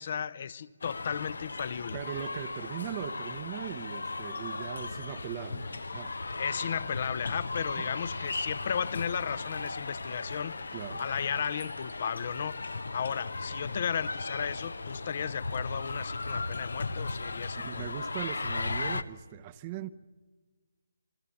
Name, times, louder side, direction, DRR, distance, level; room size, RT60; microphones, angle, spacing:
voice 1, 0.0-2.0 6.4-10.6 11.0-12.6 12.9-17.9, left 7 dB, 45° left, 0.9 m, -34 dB
sound 1, 0.8-19.0, left 3 dB, 70° left, 1.0 m, -37 dB
voice 2, 1.9-6.1 7.8-7.9 10.7-11.0 17.6-19.9, right 11 dB, 25° right, 0.8 m, -39 dB
sound 2, 6.1-17.0, left 2 dB, 90° left, 5.5 m, -50 dB
26.5 x 24.0 x 7.1 m
figure-of-eight pair, 150°, 0 cm